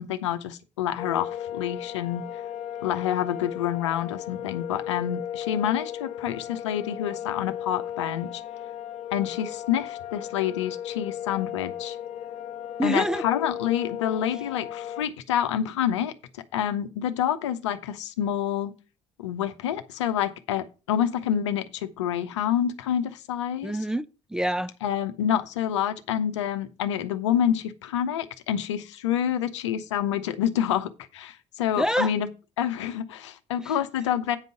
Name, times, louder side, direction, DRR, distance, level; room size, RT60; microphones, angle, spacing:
voice 1, 0.0-2.2 2.8-8.4 9.1-12.0 12.8-16.1 16.5-18.7 19.2-23.7 24.8-32.3 32.6-34.4, left 10 dB, 75° left, 0.8 m, -27 dB
sound 1, 1.0-15.0, left 10 dB, 45° left, 0.5 m, -36 dB
voice 2, 12.8-13.2 23.6-24.7 31.8-32.1 33.6-33.7, equal, 5° right, 0.5 m, -26 dB
9.0 x 5.3 x 6.2 m
figure-of-eight pair, 50°, 15 cm